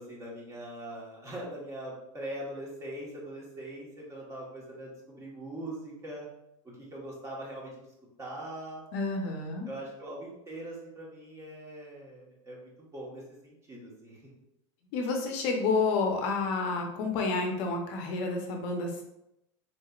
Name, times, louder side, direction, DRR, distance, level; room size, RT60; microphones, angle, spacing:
voice 1, 0.0-6.3 6.6-7.7 8.2-8.9 9.6-14.2, right 1 dB, 20° right, -4 dB, 1.2 m, -42 dB
voice 2, 8.9-9.7 14.9-19.0, left 3 dB, 55° left, 2 dB, 0.7 m, -29 dB
4.0 x 3.1 x 2.4 m, 0.83 s
supercardioid pair, 135°, 16 cm